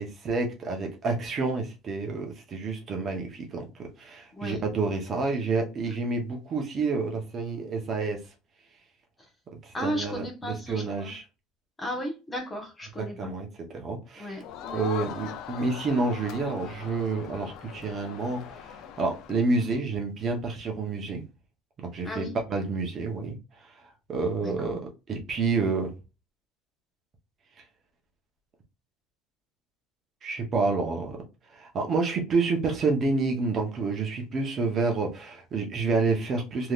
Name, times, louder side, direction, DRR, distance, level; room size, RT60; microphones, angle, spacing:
voice 1, 0.0-8.2 9.6-11.2 13.0-13.5 13.7-14.4 14.7-21.2 21.8-23.4 24.1-24.8 25.1-25.9 30.2-31.2 31.5-36.7, right 3 dB, 35° right, 0.8 m, -29 dB
voice 2, 9.7-11.1 11.8-13.3 14.2-14.8 22.0-22.3 24.4-24.7, equal, 15° left, 1.0 m, -35 dB
Crowd, 14.4-19.7, left 9 dB, 60° left, 0.4 m, -41 dB
3.3 x 2.8 x 2.4 m
cardioid pair, 140°, 0 cm